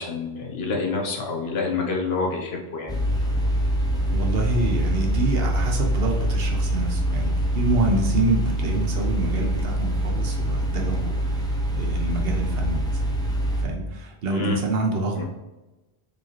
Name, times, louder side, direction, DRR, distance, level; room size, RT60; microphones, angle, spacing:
voice 1, 0.0-2.9 14.3-14.6 15.2-15.3, left 4 dB, 70° left, 1 dB, 1.0 m, -27 dB
sound 1, 2.9-13.6, right 1 dB, 5° left, 0.4 m, -24 dB
voice 2, 4.1-11.5 11.8-13.0 13.6-15.2, right 2 dB, 65° right, 1 dB, 1.0 m, -27 dB
4.7 x 3.1 x 2.9 m, 1.1 s
omnidirectional pair, 1.1 m